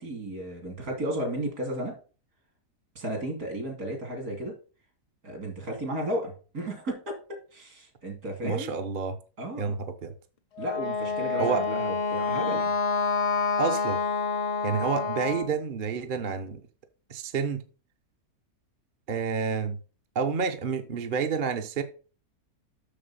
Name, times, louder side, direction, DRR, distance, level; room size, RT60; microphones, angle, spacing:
voice 1, 0.0-1.9 2.9-4.6 5.2-7.2 7.5-8.7 9.4-9.7 10.6-12.7, right 1 dB, 65° right, 3.1 m, -33 dB
voice 2, 8.4-9.2 9.6-10.1 11.4-11.7 13.6-14.0 14.6-16.6 17.1-17.6 19.1-19.8 20.1-21.8, right 5 dB, 40° right, 0.9 m, -29 dB
Wind instrument woodwind instrument, 10.6-15.5, left 5 dB, 45° left, 0.4 m, -28 dB
6.8 x 6.6 x 5.4 m
omnidirectional pair, 1.7 m